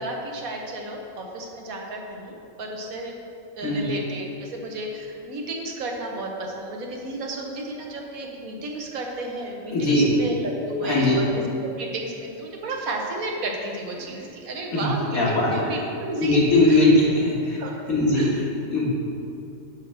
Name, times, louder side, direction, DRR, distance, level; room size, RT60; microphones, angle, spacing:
voice 1, 0.0-3.1 3.6-16.4 16.7-16.9 17.6-17.8 18.1-18.4, right 2 dB, 80° right, 1 dB, 1.4 m, -32 dB
voice 2, 9.7-10.1 10.8-11.1 14.0-14.2 14.7-14.9 15.1-15.7 16.2-17.6 17.9-18.9, left 2 dB, 90° left, -6 dB, 2.2 m, -20 dB
9.0 x 3.4 x 6.5 m, 2.6 s
omnidirectional pair, 1.5 m